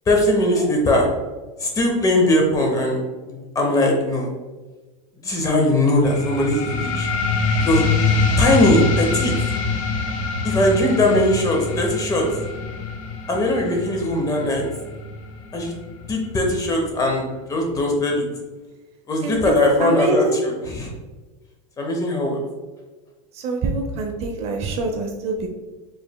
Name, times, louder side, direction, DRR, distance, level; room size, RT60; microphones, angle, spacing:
voice 1, 0.1-1.1 1.6-4.3 5.2-7.1 7.6-7.8 8.4-9.3 10.4-12.3 13.3-14.6 15.5-15.7 16.1-18.2 19.1-20.9 21.8-22.4, left 1 dB, 20° left, 1 dB, 0.8 m, -20 dB
sound 1, 6.0-17.1, left 3 dB, 85° left, 0.8 m, -25 dB
voice 2, 19.2-20.4 23.3-25.5, right 2 dB, 40° right, 3 dB, 0.5 m, -25 dB
5.0 x 3.2 x 2.2 m, 1.2 s
supercardioid pair, 140°, 17 cm